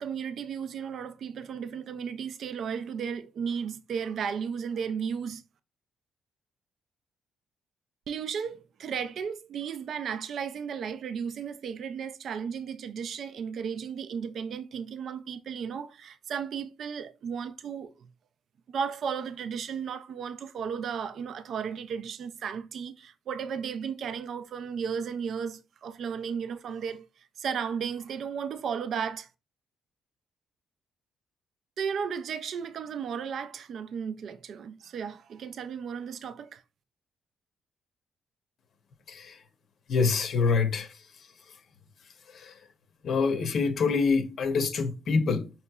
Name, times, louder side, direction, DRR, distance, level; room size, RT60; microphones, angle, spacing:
voice 1, 0.0-5.4 8.1-18.1 18.7-29.3 31.8-36.6, right 7 dB, 65° right, 0.3 m, -34 dB
voice 2, 39.1-39.4 39.9-40.9 42.3-42.5 43.0-45.5, left 4 dB, 60° left, 0.7 m, -26 dB
5.4 x 2.8 x 2.3 m
cardioid pair, 90°, 0 cm